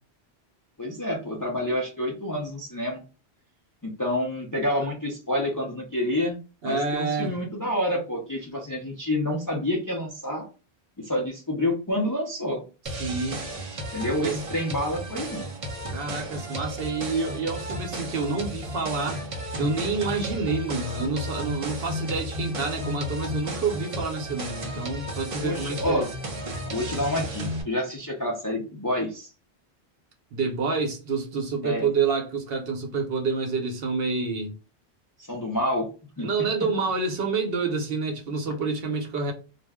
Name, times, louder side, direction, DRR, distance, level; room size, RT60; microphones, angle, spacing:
voice 1, 0.8-3.0 3.8-6.4 6.6-10.5 11.0-12.6 13.9-15.5 25.4-26.1 26.7-29.3 31.6-31.9 35.2-35.9 36.2-36.3, left 1 dB, 30° left, 0.4 m, -28 dB
voice 2, 6.6-7.4 13.0-13.4 14.2-14.5 15.9-26.0 30.3-34.5 36.2-39.3, right 4 dB, 65° right, 0.9 m, -28 dB
sound 1, 12.9-27.6, equal, 40° right, 0.5 m, -34 dB
2.4 x 2.1 x 3.4 m
omnidirectional pair, 1.1 m